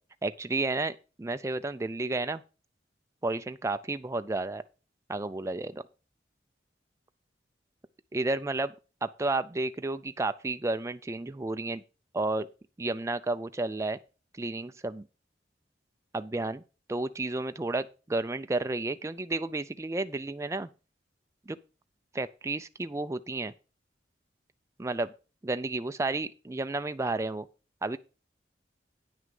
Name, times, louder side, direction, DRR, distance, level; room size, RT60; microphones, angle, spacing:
voice 1, 0.2-2.4 3.2-4.6 5.1-5.8 8.1-8.7 9.0-11.8 12.1-12.5 12.8-14.0 14.4-15.1 16.1-16.6 16.9-20.7 21.5-21.6 22.1-23.5 24.8-25.1 25.4-27.5 27.8-28.0, right 2 dB, 15° right, 0.4 m, -31 dB
9.4 x 6.2 x 5.4 m
head